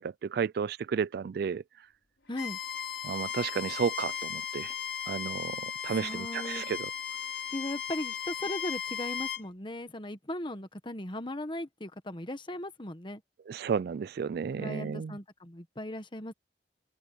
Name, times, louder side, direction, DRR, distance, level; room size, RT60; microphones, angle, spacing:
voice 1, 0.0-1.6 3.0-4.7 5.1-6.9 13.5-15.2, right 6 dB, 60° right, 0.3 m, -32 dB
Bowed string instrument, 2.3-9.4, left 8 dB, 85° left, 4.8 m, -36 dB
voice 2, 2.3-2.6 6.0-6.6 7.5-13.2 14.6-16.3, left 1 dB, 30° left, 1.5 m, -38 dB
open air
head